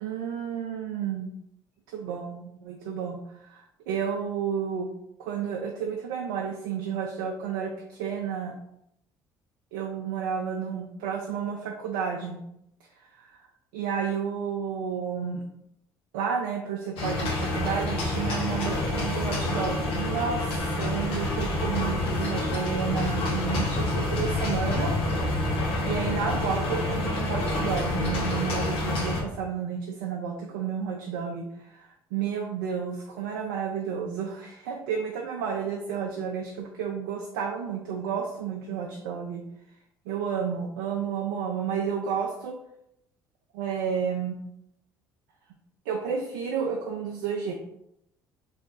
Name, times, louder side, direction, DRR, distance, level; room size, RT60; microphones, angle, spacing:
voice 1, 0.0-1.3 1.9-4.9 5.2-8.5 9.7-12.4 13.0-13.5 13.7-15.4 16.1-25.4 25.8-39.4 40.1-42.6 43.5-44.4 45.9-47.5, right 7 dB, 85° right, 1 dB, 0.4 m, -31 dB
sound 1, 17.0-29.2, left 2 dB, 65° left, 1.0 m, -28 dB
3.1 x 2.4 x 3.6 m, 0.79 s
hypercardioid pair, 65°, 10 cm